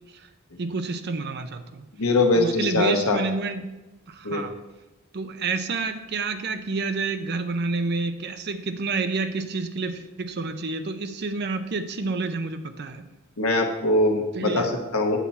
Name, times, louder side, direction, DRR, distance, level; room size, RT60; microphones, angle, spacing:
voice 1, 0.6-1.9 2.3-3.7 4.1-4.6 5.1-13.0 14.3-14.7, right 3 dB, 50° right, 9 dB, 0.5 m, -29 dB
voice 2, 2.0-3.2 4.2-4.4 13.4-15.2, left 2 dB, 90° left, 3 dB, 1.2 m, -22 dB
8.2 x 5.6 x 4.2 m, 1.1 s
head